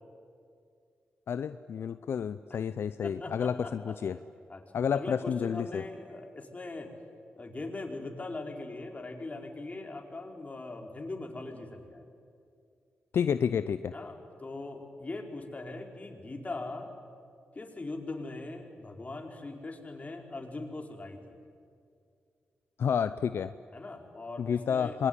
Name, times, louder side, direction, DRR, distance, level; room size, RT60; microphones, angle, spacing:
voice 1, 1.3-4.2 4.7-5.8 13.1-13.9 22.8-23.5 24.4-25.1, left 7 dB, 75° left, 12 dB, 0.6 m, -30 dB
voice 2, 3.0-3.9 4.5-6.9 7.4-12.0 13.9-16.9 17.5-21.2 23.7-25.0, left 2 dB, 35° left, 2 dB, 4.7 m, -40 dB
26.5 x 22.5 x 10.0 m, 2.4 s
cardioid pair, 55°, 4 cm